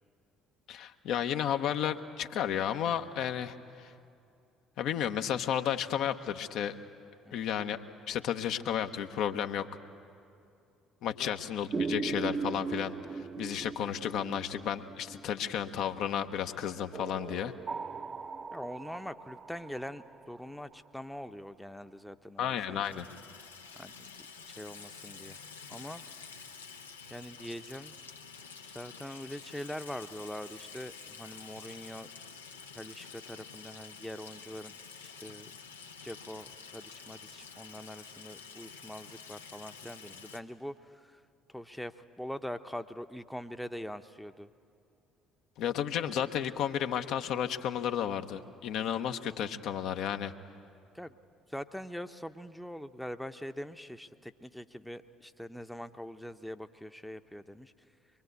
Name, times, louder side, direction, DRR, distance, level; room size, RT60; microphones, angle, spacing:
voice 1, 0.7-3.9 4.8-6.8 7.3-7.8 8.1-9.6 11.0-17.5 22.4-23.1 45.6-50.3, left 9 dB, 60° left, 7 dB, 0.9 m, -32 dB
sound 1, 11.7-16.0 16.9-20.7, right 5 dB, 35° right, 0.9 m, -39 dB
voice 2, 18.5-23.0 23.8-24.1 24.5-25.4 25.7-26.0 27.1-28.0 28.6-32.1 32.7-35.5 36.0-41.2 41.5-44.5 50.9-51.1 51.5-57.7, equal, 5° left, 9 dB, 0.9 m, -43 dB
Water tap faucet / Sink (filling or washing), 22.5-40.4, left 5 dB, 85° left, 1.0 m, -49 dB
24.0 x 22.0 x 8.2 m, 2.5 s
figure-of-eight pair, 50°, 0 cm